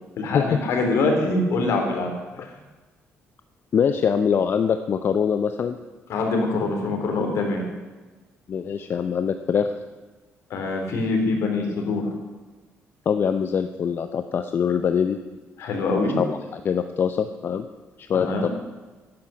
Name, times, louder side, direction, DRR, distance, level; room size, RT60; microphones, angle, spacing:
voice 1, 0.2-2.1 2.4-2.5 6.1-7.6 10.5-12.1 15.6-16.1 18.1-18.5, left 3 dB, 75° left, 2 dB, 3.5 m, -24 dB
voice 2, 3.7-5.8 8.5-9.7 13.1-15.2 16.2-17.7 18.0-18.5, left 7 dB, 50° left, 8 dB, 0.6 m, -23 dB
11.5 x 10.5 x 7.5 m, 1.2 s
cardioid pair, 110°, 5 cm